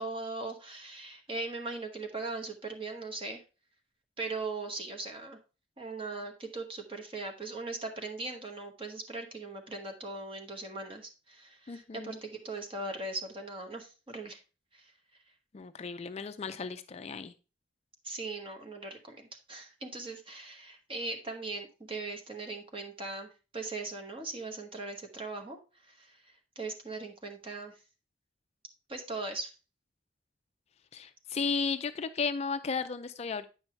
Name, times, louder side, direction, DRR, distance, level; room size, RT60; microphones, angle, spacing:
voice 1, 0.0-3.4 4.2-5.4 5.8-14.4 14.7-14.9 18.0-25.6 25.8-27.7 28.9-29.6, right 3 dB, 30° right, 3 dB, 1.2 m, -39 dB
voice 2, 11.7-12.2 15.5-17.3 30.9-33.4, left 5 dB, 35° left, 10 dB, 0.4 m, -34 dB
8.9 x 5.5 x 3.2 m, 0.32 s
head